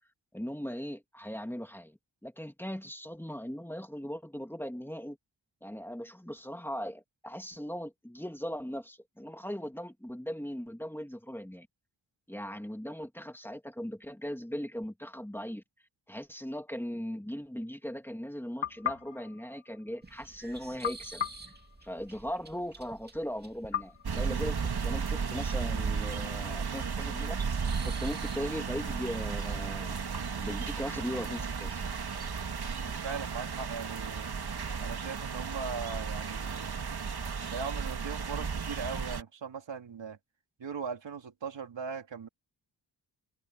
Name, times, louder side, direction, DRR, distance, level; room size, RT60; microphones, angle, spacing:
voice 1, 0.3-5.2 5.6-11.7 12.3-15.6 16.1-21.2 21.8-27.4 27.9-30.1 30.4-31.8, equal, 5° left, 2.4 m, -39 dB
sound 1, 18.6-20.2 20.8-22.4 23.7-25.1, left 9 dB, 90° left, 3.5 m, -39 dB
sound 2, 20.0-34.6, right 2 dB, 20° right, 2.5 m, -52 dB
sound 3, 24.0-39.2, right 5 dB, 55° right, 2.6 m, -34 dB
voice 2, 26.5-26.9 32.7-34.3 34.8-36.9 37.5-40.2 40.6-42.3, right 5 dB, 75° right, 2.8 m, -39 dB
open air
wide cardioid pair, 115°, 44 cm